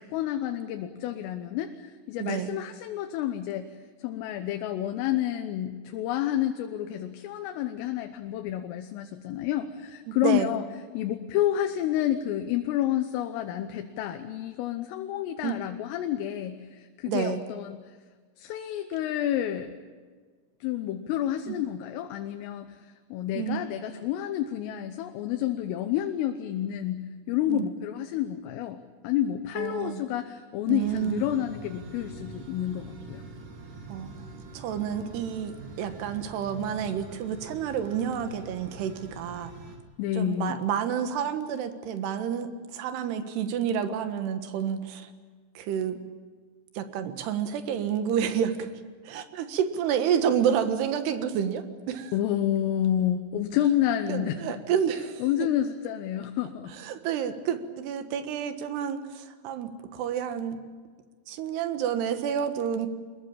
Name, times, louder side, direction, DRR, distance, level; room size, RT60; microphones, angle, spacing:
voice 1, 0.0-3.7 4.0-10.7 11.0-17.8 18.4-19.7 20.6-28.8 29.0-33.2 40.0-40.6 52.1-54.6 55.2-56.7, left 11 dB, 80° left, 7 dB, 3.6 m, -29 dB
voice 2, 2.2-2.5 10.1-10.5 15.4-15.5 17.1-17.4 21.5-21.6 23.3-23.6 27.5-27.7 29.6-30.0 30.7-31.2 33.9-34.1 34.5-39.5 40.2-45.1 45.5-46.0 46.8-48.7 49.0-52.1 54.1-55.2 56.8-60.6 61.3-62.9, right 8 dB, 65° right, 9 dB, 3.1 m, -29 dB
sound 1, 30.8-39.8, right 3 dB, 45° right, 4.2 m, -44 dB
25.0 x 21.5 x 8.8 m, 1.5 s
omnidirectional pair, 5.8 m